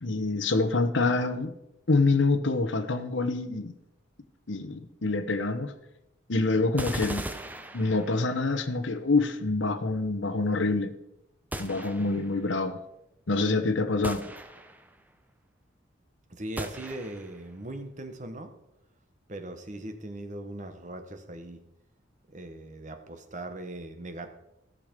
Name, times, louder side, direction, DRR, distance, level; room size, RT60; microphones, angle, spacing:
voice 1, 0.0-1.5 1.9-3.7 4.5-5.7 6.3-7.2 7.7-10.9 11.6-12.8 13.3-14.2, left 3 dB, 65° left, 0.9 m, -26 dB
sound 1, 6.8-8.4 11.5-12.4 14.0-15.0 16.6-17.4, right 1 dB, 10° right, 0.6 m, -38 dB
voice 2, 16.3-18.5 19.3-21.6 22.3-24.4, right 1 dB, 35° right, 1.1 m, -39 dB
15.5 x 6.7 x 5.2 m
head